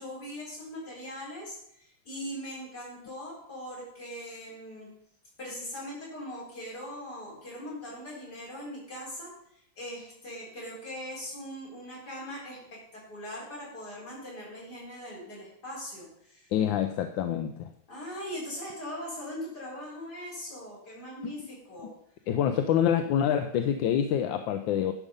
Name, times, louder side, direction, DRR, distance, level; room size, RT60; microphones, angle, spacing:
voice 1, 0.0-4.9 5.4-16.5 17.9-21.9, equal, 55° left, -6 dB, 5.0 m, -40 dB
voice 2, 16.5-17.7 22.3-24.9, left 9 dB, 80° left, 8 dB, 1.3 m, -26 dB
11.0 x 5.4 x 5.3 m, 0.71 s
omnidirectional pair, 2.1 m